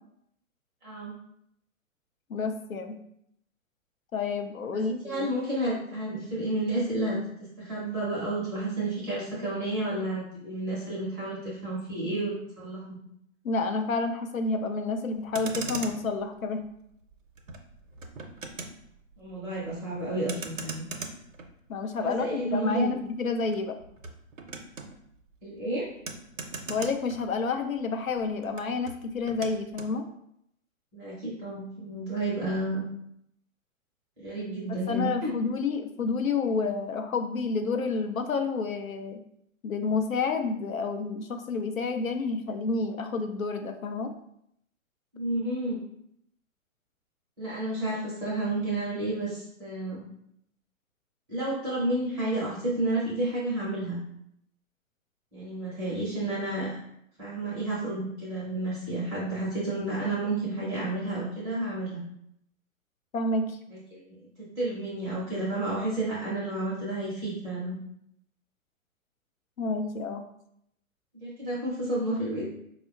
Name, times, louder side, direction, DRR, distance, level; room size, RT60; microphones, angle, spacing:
voice 1, 0.8-1.1 4.7-13.0 19.2-20.8 22.0-22.9 25.4-25.9 30.9-32.8 34.2-35.4 45.1-45.8 47.4-50.0 51.3-54.0 55.3-56.7 57.2-62.0 63.7-64.0 64.6-67.8 71.1-72.5, right 1 dB, 10° right, -8 dB, 0.5 m, -31 dB
voice 2, 2.3-3.0 4.1-5.3 13.4-16.6 21.7-23.8 26.7-30.0 34.7-39.2 39.6-44.1 63.1-63.6 69.6-70.2, left 4 dB, 75° left, 6 dB, 0.5 m, -29 dB
Motor vehicle (road), 15.1-27.8 28.0-29.9, right 4 dB, 70° right, 0.6 m, -41 dB
4.4 x 2.1 x 2.3 m, 0.74 s
figure-of-eight pair, 120°, 41 cm